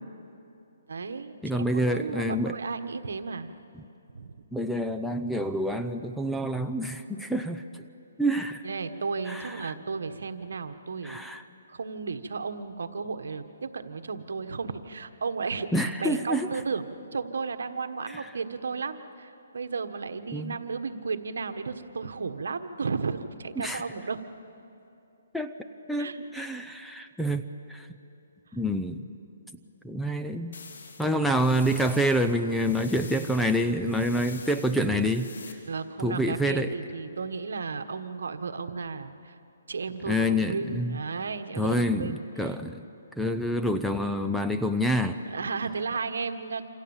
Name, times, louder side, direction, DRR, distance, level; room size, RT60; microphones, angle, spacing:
voice 1, 0.9-3.5 4.1-4.3 8.6-11.4 11.7-24.2 26.0-26.8 35.6-39.3 39.7-42.3 45.3-46.7, right 4 dB, 75° right, 8 dB, 1.5 m, -34 dB
voice 2, 1.4-2.6 4.5-7.8 8.2-8.6 9.3-9.8 11.0-11.4 15.7-16.5 18.1-18.3 20.3-20.6 23.6-23.8 25.3-25.5 25.9-27.9 28.5-29.1 29.8-30.5 31.0-35.6 36.0-36.7 40.0-41.0 41.6-42.9 43.2-45.2, equal, ahead, 6 dB, 0.7 m, -27 dB
sound 1, 30.5-35.5, left 5 dB, 70° left, 3.3 m, -46 dB
27.5 x 27.0 x 7.4 m, 2.8 s
hypercardioid pair, 160°, 0 cm